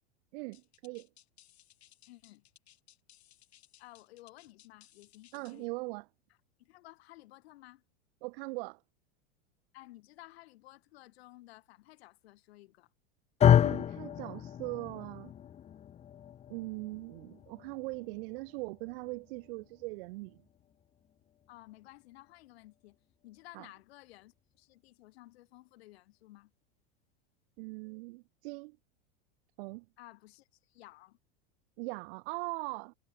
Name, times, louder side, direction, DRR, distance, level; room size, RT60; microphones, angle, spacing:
voice 1, 0.3-1.1 5.3-6.1 8.2-8.8 13.6-15.3 16.5-20.4 23.5-23.7 27.6-28.8 29.6-29.9 31.8-32.9, right 26 dB, 65° right, 1.7 m, -40 dB
sound 1, 0.5-5.7, left 12 dB, 90° left, 5.0 m, -62 dB
voice 2, 2.1-2.4 3.8-5.7 6.6-7.8 9.7-12.9 21.5-23.0 23.2-26.5 30.0-31.2, left 18 dB, 75° left, 4.2 m, -55 dB
sound 2, 13.4-21.7, left 10 dB, 20° left, 0.6 m, -31 dB
supercardioid pair, 120°, 31 cm